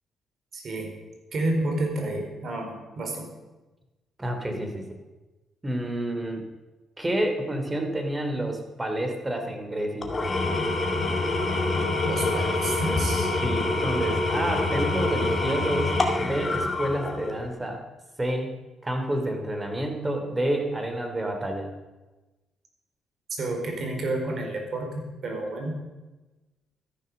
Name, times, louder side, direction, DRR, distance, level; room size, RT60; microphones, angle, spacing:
voice 1, 0.5-0.9 1.3-3.3 12.0-13.3 23.4-25.8, right 2 dB, 55° right, 3 dB, 4.3 m, -30 dB
voice 2, 4.2-5.0 5.6-6.4 7.0-10.1 13.4-17.8 18.2-18.5 18.8-21.7, right 1 dB, 15° right, 5 dB, 2.9 m, -29 dB
Engine / Tools, 10.0-17.5, left 2 dB, 30° left, 2.1 m, -26 dB
13.5 x 11.0 x 6.7 m, 1.1 s
cardioid pair, 90°, 0 cm